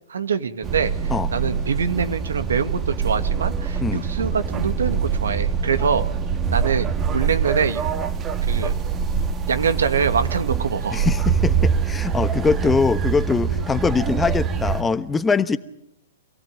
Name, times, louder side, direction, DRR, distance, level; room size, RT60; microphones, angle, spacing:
voice 1, 0.1-6.1 6.5-7.8 8.5-8.7 9.5-11.1, right 6 dB, 80° right, 9 dB, 2.3 m, -24 dB
sound 1, 0.6-14.8, right 7 dB, 25° right, 1.9 m, -24 dB
voice 2, 10.9-15.6, left 5 dB, 15° left, 12 dB, 1.2 m, -22 dB
27.5 x 17.5 x 9.3 m, 0.80 s
hypercardioid pair, 120°, 0 cm